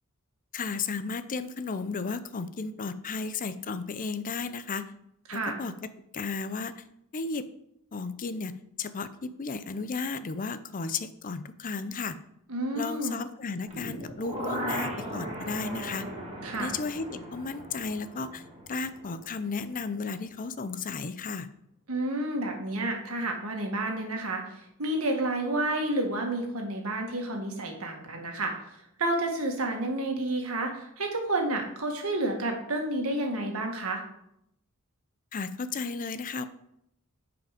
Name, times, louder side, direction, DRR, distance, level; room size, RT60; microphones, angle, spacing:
voice 1, 0.5-4.9 5.3-5.7 6.1-6.8 7.1-7.5 7.9-12.2 12.7-16.1 16.5-18.4 18.7-21.5 35.3-36.5, left 4 dB, 40° left, 12 dB, 0.5 m, -34 dB
voice 2, 12.5-13.2 16.4-16.7 21.9-28.5 29.0-34.0, right 1 dB, 85° right, 2 dB, 1.8 m, -30 dB
sound 1, 13.7-19.7 20.0-20.1, right 1 dB, 30° right, 2.2 m, -38 dB
9.3 x 5.0 x 5.1 m, 0.76 s
head